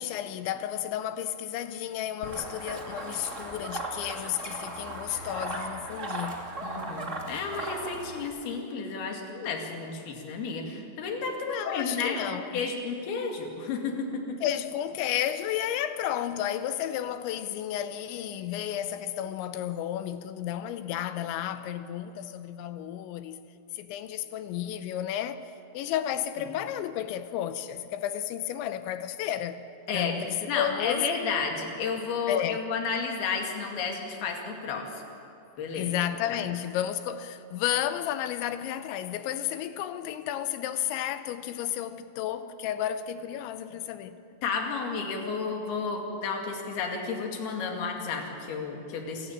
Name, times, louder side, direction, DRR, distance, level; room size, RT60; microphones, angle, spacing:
voice 1, 0.0-6.4 11.5-12.7 14.4-23.4 23.7-29.7 29.9-31.1 32.3-32.6 35.8-44.2, left 11 dB, 80° left, 2.8 m, -32 dB
sound 1, 2.2-8.2, right 2 dB, 60° right, 0.7 m, -37 dB
voice 2, 6.6-12.2 12.5-14.4 26.4-26.5 29.9-30.1 30.5-34.9 35.6-35.9 36.3-36.4 44.4-49.3, left 5 dB, 55° left, 4.0 m, -32 dB
28.0 x 16.0 x 8.9 m
omnidirectional pair, 5.8 m